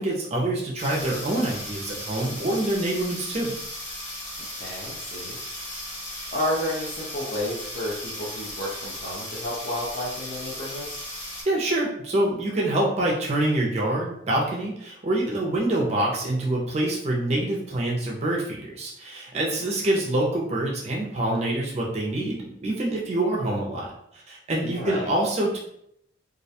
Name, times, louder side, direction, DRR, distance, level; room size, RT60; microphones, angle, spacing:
voice 1, 0.0-3.6 11.4-25.6, right 1 dB, 35° right, -2 dB, 0.4 m, -26 dB
sound 1, 0.8-11.4, left 1 dB, 80° left, 1.3 m, -36 dB
voice 2, 4.5-5.4 6.3-11.0 24.7-25.1, left 1 dB, 45° left, -6 dB, 0.5 m, -31 dB
2.3 x 2.1 x 2.7 m, 0.73 s
head